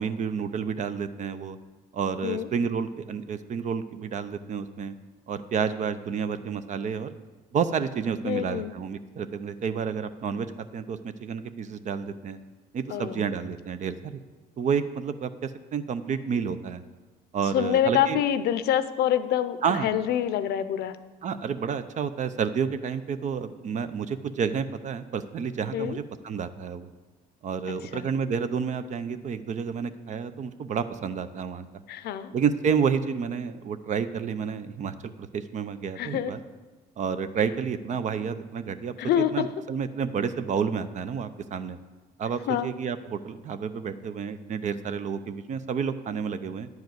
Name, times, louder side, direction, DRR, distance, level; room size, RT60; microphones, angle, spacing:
voice 1, 0.0-1.6 1.9-4.9 5.3-7.1 7.5-10.5 10.7-12.4 12.7-14.2 14.6-16.8 17.3-18.2 19.6-19.9 21.2-26.9 27.4-31.8 32.3-36.4 37.0-41.8 42.2-46.7, right 6 dB, 45° right, 12 dB, 0.6 m, -30 dB
voice 2, 8.2-8.7 12.9-13.2 17.5-21.0 25.7-26.0 27.9-28.1 31.9-32.3 36.0-36.3 39.0-39.5 42.5-42.7, left 10 dB, 70° left, 13 dB, 0.6 m, -26 dB
10.5 x 4.8 x 7.8 m, 1.3 s
cardioid pair, 110°, 17 cm